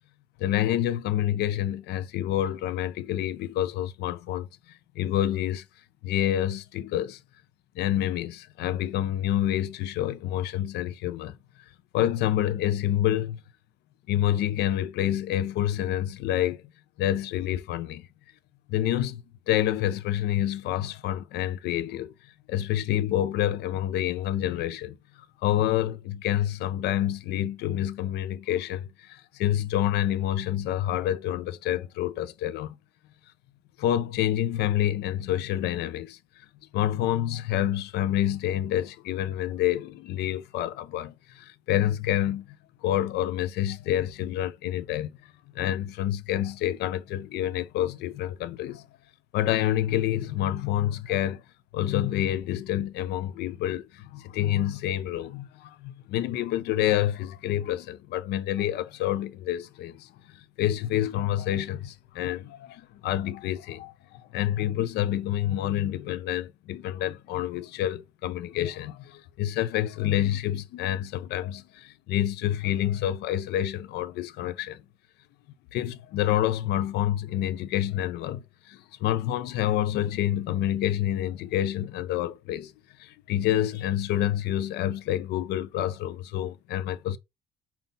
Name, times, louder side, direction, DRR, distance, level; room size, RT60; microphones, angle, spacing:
voice 1, 0.4-5.6 6.0-7.2 7.8-11.4 11.9-13.4 14.1-16.6 17.0-18.1 18.7-22.1 22.5-25.0 25.4-32.8 33.8-36.2 36.7-42.6 42.8-45.2 45.5-48.9 49.3-51.4 51.7-60.1 60.6-74.8 75.7-82.7 83.0-87.2, left 12 dB, 75° left, 0.5 m, -28 dB
5.3 x 2.3 x 3.9 m
cardioid pair, 110°, 17 cm